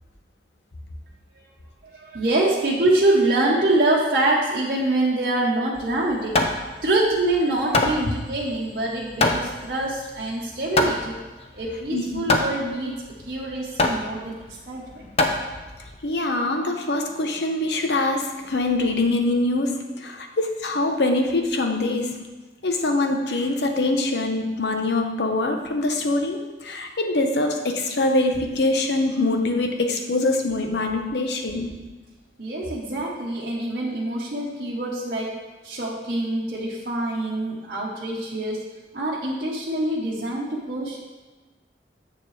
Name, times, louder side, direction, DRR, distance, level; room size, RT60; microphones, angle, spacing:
voice 1, 1.9-6.4 6.8-11.2 11.5-14.4 14.7-15.1 32.4-35.4 35.6-38.6 38.9-41.0, right 2 dB, 55° right, -5 dB, 1.0 m, -25 dB
Hammer, 5.8-16.0, left 2 dB, 35° left, 0.5 m, -26 dB
voice 2, 11.9-12.4 16.0-22.2 22.6-31.8, left 2 dB, 75° left, 4 dB, 0.8 m, -24 dB
7.3 x 6.8 x 3.2 m, 1.3 s
head